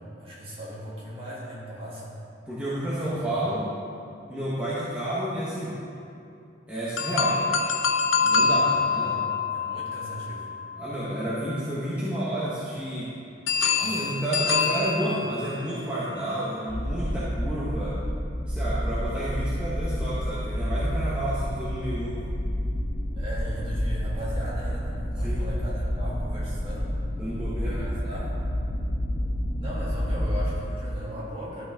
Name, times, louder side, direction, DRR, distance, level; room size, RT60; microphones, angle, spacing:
voice 1, 0.0-2.2 3.0-3.1 8.7-10.5 13.7-14.1 23.1-26.9 27.6-28.4 29.6-31.7, equal, 30° right, -7 dB, 2.2 m, -38 dB
voice 2, 2.5-3.7 4.3-5.8 6.7-7.6 8.2-9.1 10.8-13.1 13.7-18.0 18.5-22.2 25.1-25.4 27.1-27.8, right 1 dB, 5° right, -10 dB, 1.1 m, -30 dB
sound 1, 7.0-11.0 13.5-15.8, left 5 dB, 80° left, 0.6 m, -26 dB
sound 2, 16.7-30.4, equal, 40° left, 1.7 m, -29 dB
12.0 x 6.2 x 3.5 m, 2.5 s
head